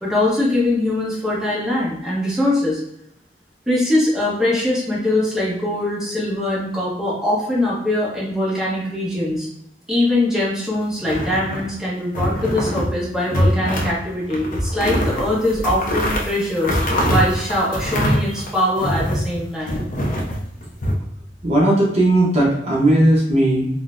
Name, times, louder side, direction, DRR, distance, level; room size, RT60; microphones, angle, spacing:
voice 1, 0.0-2.8 3.7-9.5 9.9-16.8 17.1-19.8, left 1 dB, 5° right, -7 dB, 0.9 m, -22 dB
sound 1, 11.0-11.7 12.1-12.9 13.3-14.0 14.3-19.3 19.7-20.9, equal, 50° left, 0.6 m, -22 dB
voice 2, 21.4-23.7, right 1 dB, 35° right, -4 dB, 0.7 m, -16 dB
3.7 x 2.1 x 2.5 m, 0.75 s
head